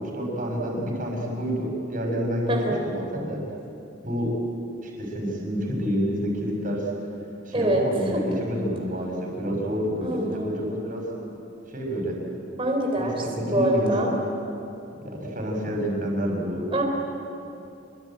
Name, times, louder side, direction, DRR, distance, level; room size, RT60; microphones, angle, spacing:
voice 1, 0.0-2.6 2.8-3.4 4.0-4.3 4.8-6.9 7.4-11.1 11.7-12.2 13.0-14.2 15.0-16.6, equal, 45° right, 0 dB, 6.8 m, -28 dB
voice 2, 2.5-2.8 7.5-7.8 8.1-8.2 10.0-10.7 12.6-13.2 13.5-14.1 16.7-16.8, right 1 dB, 30° right, 1 dB, 4.1 m, -25 dB
28.0 x 22.5 x 9.1 m, 2.8 s
head